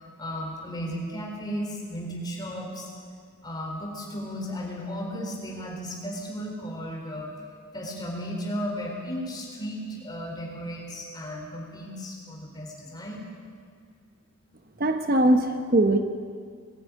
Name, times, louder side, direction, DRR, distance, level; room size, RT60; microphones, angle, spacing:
voice 1, 0.0-2.9 3.4-7.3 7.7-13.2, equal, 20° left, -2 dB, 4.3 m, -35 dB
voice 2, 14.8-16.0, right 1 dB, 45° right, 6 dB, 0.9 m, -21 dB
21.0 x 13.0 x 9.6 m, 2.1 s
head